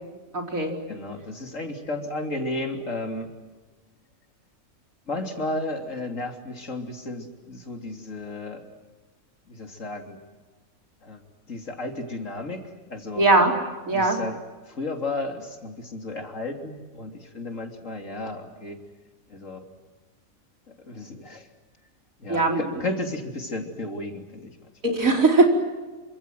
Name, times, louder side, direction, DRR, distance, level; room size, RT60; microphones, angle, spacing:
voice 1, 0.3-0.7 13.2-13.5 13.9-14.2 22.3-22.6 24.8-25.4, right 2 dB, 75° right, 2 dB, 5.0 m, -19 dB
voice 2, 0.9-3.5 5.1-8.7 9.5-10.2 11.0-11.2 11.5-13.3 13.9-18.8 19.3-19.6 20.7-21.5 22.2-24.7, left 2 dB, 65° left, 4 dB, 3.6 m, -33 dB
27.5 x 25.5 x 7.9 m, 1.3 s
omnidirectional pair, 1.4 m